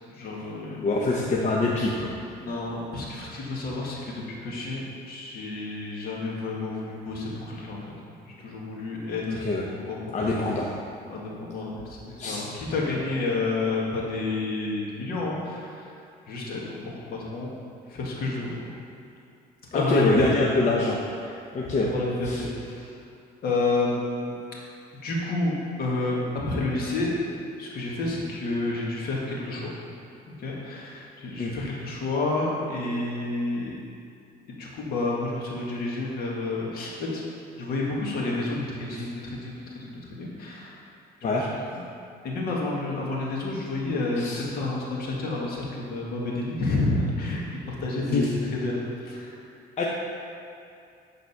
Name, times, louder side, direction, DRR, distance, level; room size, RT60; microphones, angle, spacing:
voice 1, 0.1-0.8 2.4-7.8 8.2-10.6 11.1-15.9 16.3-17.5 17.9-18.6 19.7-20.3 21.8-22.9 23.4-24.4 25.0-27.1 27.6-29.7 30.3-33.7 34.5-37.2 37.6-40.8 41.3-41.8 42.2-47.4 47.7-49.4, left 2 dB, 65° left, -3 dB, 2.0 m, -30 dB
voice 2, 0.8-2.1 9.3-9.6 10.1-10.7 12.2-12.4 19.7-21.0 21.5-21.9 22.2-22.4 31.4-31.5 41.2-41.5 44.2-44.4 48.1-48.3 49.8-49.9, left 2 dB, 40° left, -3 dB, 0.9 m, -24 dB
11.0 x 4.1 x 5.7 m, 2.5 s
cardioid pair, 110°, 17 cm